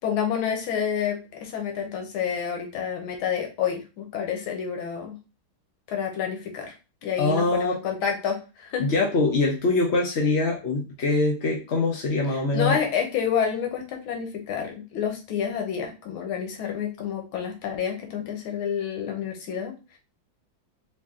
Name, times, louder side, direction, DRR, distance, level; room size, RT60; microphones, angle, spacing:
voice 1, 0.0-5.2 5.9-6.7 7.0-8.8 12.5-20.0, left 7 dB, 85° left, 3 dB, 1.8 m, -29 dB
voice 2, 7.2-7.8 8.8-12.8, left 3 dB, 60° left, 0 dB, 0.7 m, -23 dB
4.4 x 2.7 x 3.6 m, 0.30 s
omnidirectional pair, 2.2 m